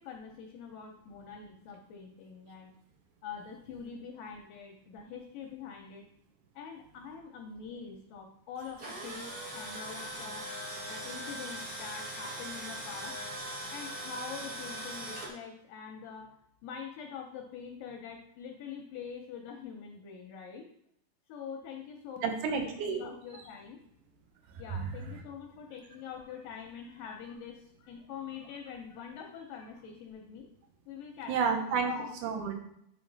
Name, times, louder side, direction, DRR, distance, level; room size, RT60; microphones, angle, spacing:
voice 1, 0.0-2.7 3.2-6.0 6.6-10.5 10.9-13.2 13.7-16.3 16.6-20.7 21.3-23.8 24.6-30.5 30.9-31.3 31.7-32.1, left 6 dB, 80° left, 3 dB, 2.0 m, -44 dB
Tools, 8.6-15.3, right 1 dB, 90° right, 0.8 m, -40 dB
voice 2, 22.2-23.0 24.7-24.9 31.3-31.9 32.2-32.5, right 6 dB, 70° right, 4 dB, 1.9 m, -30 dB
9.8 x 3.5 x 4.0 m, 0.75 s
omnidirectional pair, 4.5 m